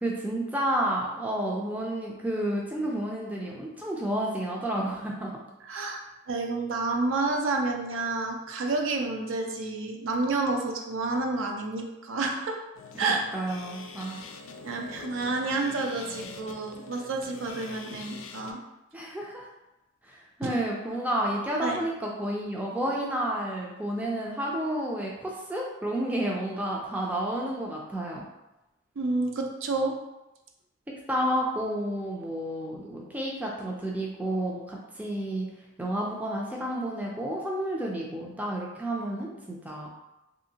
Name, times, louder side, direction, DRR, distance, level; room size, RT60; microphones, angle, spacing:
voice 1, 0.0-5.4 12.9-14.2 18.9-19.5 20.0-28.3 31.1-35.5 35.8-39.9, right 1 dB, 10° right, -2 dB, 0.3 m, -31 dB
voice 2, 5.7-6.0 6.3-12.5 13.0-13.2 14.6-18.6 20.4-20.5 21.6-21.8 29.0-29.9, right 3 dB, 70° right, 2 dB, 0.4 m, -29 dB
sound 1, 12.7-18.5, left 4 dB, 75° left, 0.4 m, -44 dB
3.2 x 2.7 x 2.8 m, 0.96 s
head